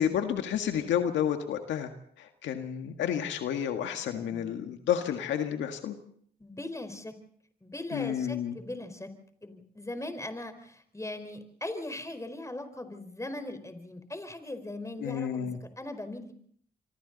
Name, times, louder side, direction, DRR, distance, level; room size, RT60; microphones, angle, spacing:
voice 1, 0.0-1.9 2.2-6.0 7.9-8.6 15.0-15.6, left 9 dB, 90° left, 6 dB, 1.7 m, -30 dB
voice 2, 4.2-4.6 6.4-7.2 7.6-9.1 9.4-16.3, left 1 dB, 15° left, 8 dB, 4.6 m, -39 dB
26.5 x 24.5 x 4.1 m, 0.64 s
supercardioid pair, 55°, 19 cm